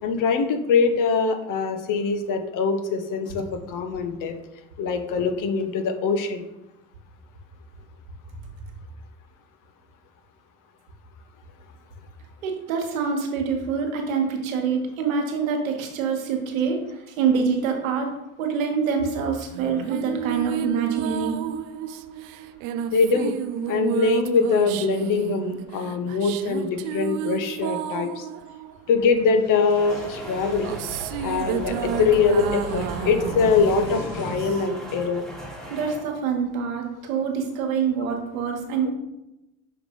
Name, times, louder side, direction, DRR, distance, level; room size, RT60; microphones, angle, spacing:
voice 1, 0.0-4.4 4.8-6.5 22.9-23.3 23.7-28.3 28.9-30.7 31.2-35.2, left 5 dB, 50° left, 7 dB, 1.0 m, -23 dB
voice 2, 12.4-18.1 18.4-21.4 35.7-38.9, right 6 dB, 85° right, 2 dB, 1.2 m, -25 dB
sound 1, 19.5-29.4 30.2-34.9, right 10 dB, 55° right, 0.5 m, -32 dB
sound 2, 28.9-34.4, left 1 dB, 75° left, 2.1 m, -37 dB
sound 3, 29.8-36.1, right 1 dB, ahead, 1.3 m, -38 dB
5.9 x 3.3 x 5.3 m, 0.93 s
hypercardioid pair, 80°, 40 cm